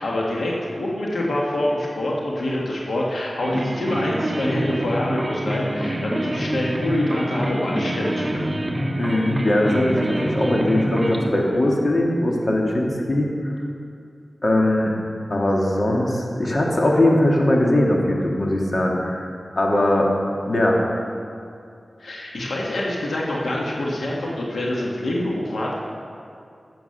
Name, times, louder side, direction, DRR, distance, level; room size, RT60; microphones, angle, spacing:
voice 1, 0.0-8.5 22.0-25.8, left 1 dB, 85° left, -3 dB, 1.8 m, -25 dB
sound 1, 3.4-11.3, right 1 dB, 25° right, 1.4 m, -26 dB
voice 2, 9.0-13.5 14.4-14.9 15.3-19.3 19.6-20.1 20.4-20.8, left 1 dB, 55° left, -1 dB, 2.2 m, -20 dB
14.0 x 7.7 x 6.8 m, 2.4 s
wide cardioid pair, 55°, 0 cm